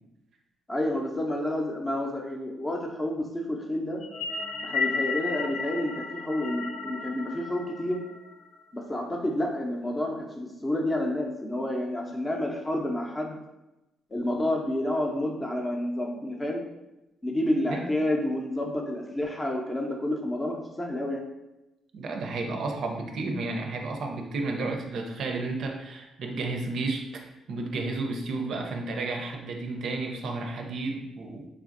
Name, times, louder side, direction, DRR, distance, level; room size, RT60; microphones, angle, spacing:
voice 1, 0.7-4.0 4.6-8.0 8.7-13.4 14.1-16.6 17.2-21.3, left 1 dB, 20° left, 1 dB, 0.6 m, -29 dB
sound 1, 4.0-8.5, left 4 dB, 70° left, 0.4 m, -33 dB
voice 2, 21.9-31.5, right 3 dB, 65° right, 2 dB, 0.4 m, -32 dB
3.3 x 2.4 x 2.5 m, 0.95 s
cardioid pair, 90°, 0 cm